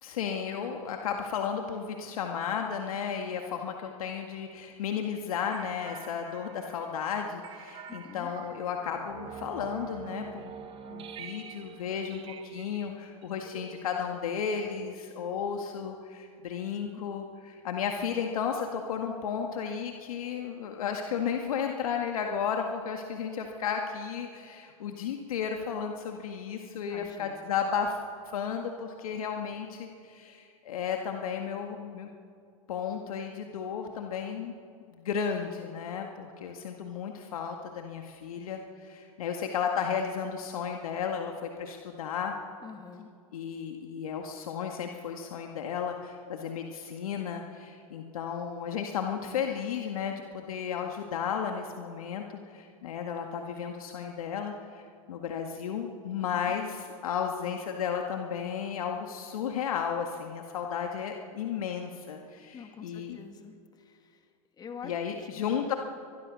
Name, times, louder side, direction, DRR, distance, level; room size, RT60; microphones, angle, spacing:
voice 1, 0.0-10.5 10.9-28.0 28.3-32.1 32.7-34.5 34.9-42.3 43.3-63.2 64.8-65.7, left 7 dB, 80° left, 3 dB, 1.9 m, -34 dB
sound 1, 5.5-14.4, right 7 dB, 30° right, 1.9 m, -46 dB
voice 2, 7.9-8.3 16.8-17.0 26.8-27.5 42.6-43.1 56.2-56.6 62.5-64.3 64.6-64.9 65.2-65.4, left 6 dB, 20° left, 5 dB, 2.3 m, -46 dB
24.5 x 20.0 x 6.4 m, 2.4 s
hypercardioid pair, 120°, 18 cm